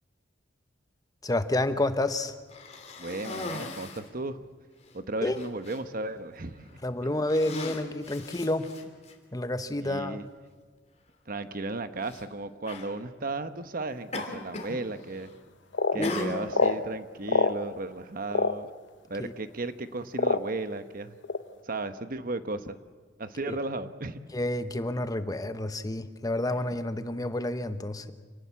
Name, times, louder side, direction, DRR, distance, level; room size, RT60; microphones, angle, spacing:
voice 1, 1.2-2.4 5.2-5.4 6.8-8.7 9.3-10.3 15.9-16.5 19.2-19.3 23.5-23.6 24.3-28.1, left 1 dB, 20° left, 10 dB, 1.0 m, -29 dB
Cough, 2.5-4.1 4.8-4.9 5.3-5.8 6.6-6.8 7.2-9.1 10.1-10.2 12.0-12.2 12.6-12.9 14.1-14.8 15.1-15.5 16.0-16.8, left 3 dB, 35° left, 3.0 m, -39 dB
voice 2, 3.0-4.4 4.9-6.8 8.2-8.3 9.8-10.2 11.3-15.3 15.9-18.7 19.0-21.2 21.6-22.8 23.2-24.2, right 2 dB, 50° right, 11 dB, 1.0 m, -35 dB
sound 1, 15.0-15.1 15.7-16.0 16.5-16.8 17.3-17.6 18.3-18.5 19.4-19.5 20.1-20.6 21.2-21.4, left 3 dB, 80° left, 1.0 m, -24 dB
27.0 x 18.5 x 8.3 m, 1.5 s
head